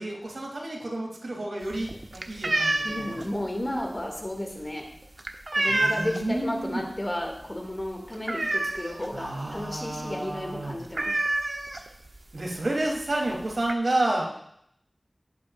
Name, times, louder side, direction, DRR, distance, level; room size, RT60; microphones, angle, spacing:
voice 1, 0.0-3.1 5.7-6.8 9.1-10.8 12.3-14.3, right 1 dB, 75° right, -2 dB, 3.4 m, -30 dB
sound 1, 1.6-6.4 6.7-7.1 7.3-7.4 7.8-9.2 9.5-9.6 9.9-10.1 10.4-10.5 10.9-12.2 12.9-13.0 13.3-13.7, right 2 dB, 55° right, 1.0 m, -28 dB
voice 2, 2.8-4.9 5.5-11.2, left 1 dB, 30° left, 1 dB, 2.5 m, -33 dB
18.5 x 8.6 x 2.6 m, 0.72 s
wide cardioid pair, 65°, 0 cm